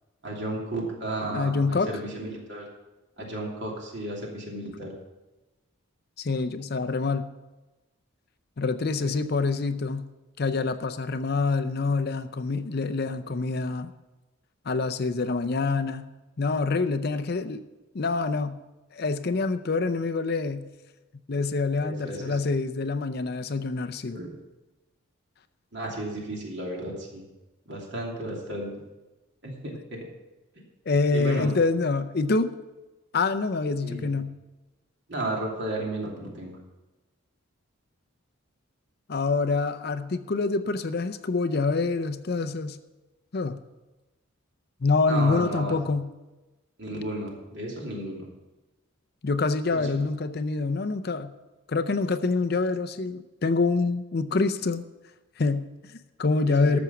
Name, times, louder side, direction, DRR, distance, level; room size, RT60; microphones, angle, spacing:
voice 1, 0.2-2.7 3.2-4.9 9.0-9.1 21.8-22.4 24.1-24.4 25.7-27.2 27.7-28.7 29.4-30.1 31.1-31.5 33.8-34.1 35.1-36.6 45.1-45.8 46.8-48.3 49.7-49.9 56.5-56.8, right 1 dB, 55° right, -1 dB, 2.9 m, -33 dB
voice 2, 1.3-1.9 6.2-7.3 8.6-10.1 10.4-13.9 14.7-16.1 16.4-17.6 17.9-18.6 18.9-20.7 21.3-24.2 30.9-32.5 33.1-34.3 39.1-42.8 43.3-43.6 44.8-46.1 49.2-51.3 51.7-54.8 55.4-56.8, left 3 dB, 45° left, 9 dB, 0.5 m, -26 dB
13.5 x 6.2 x 7.0 m, 1.1 s
head